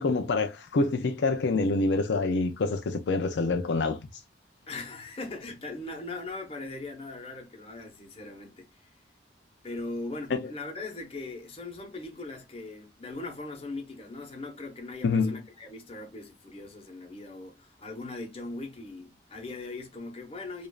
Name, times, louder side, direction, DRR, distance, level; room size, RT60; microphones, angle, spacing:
voice 1, 0.0-4.2 10.3-10.5 15.0-15.4, left 3 dB, 70° left, 0.4 m, -26 dB
voice 2, 4.7-8.9 9.6-20.7, left 2 dB, 30° left, 1.0 m, -40 dB
5.0 x 2.6 x 2.3 m
head